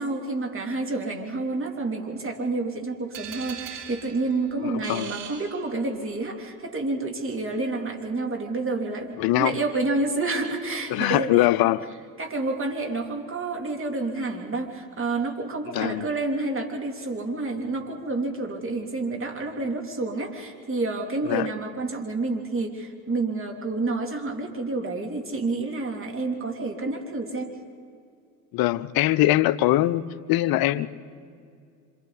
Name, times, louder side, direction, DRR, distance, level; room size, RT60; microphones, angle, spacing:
voice 1, 0.0-11.5 12.2-27.6 30.7-30.8, right 3 dB, 25° right, 3 dB, 3.2 m, -29 dB
sound 1, 3.1-6.1, right 9 dB, 70° right, 5.4 m, -41 dB
voice 2, 4.6-5.1 9.2-9.5 10.9-11.9 15.7-16.1 21.3-21.5 28.5-30.9, left 16 dB, 50° left, 14 dB, 0.8 m, -22 dB
27.0 x 26.0 x 4.2 m, 2.4 s
hypercardioid pair, 70°, 46 cm